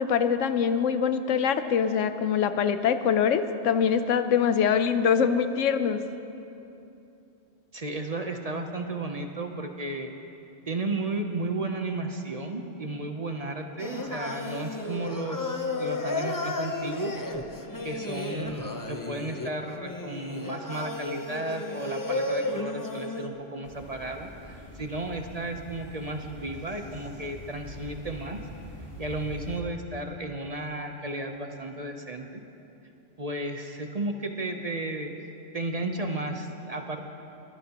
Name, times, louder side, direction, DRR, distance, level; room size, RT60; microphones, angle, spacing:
voice 1, 0.0-6.0, left 7 dB, 85° left, 10 dB, 1.0 m, -24 dB
voice 2, 7.7-10.1 10.7-17.1 17.8-28.4 29.0-32.4 33.2-35.1 35.5-37.0, right 2 dB, 35° right, 4 dB, 0.8 m, -33 dB
Singing, 13.8-23.3, left 2 dB, 20° left, 0.6 m, -33 dB
sound 1, 23.6-29.6, equal, 50° left, 3.2 m, -44 dB
22.0 x 15.0 x 2.9 m, 2.9 s
omnidirectional pair, 1.2 m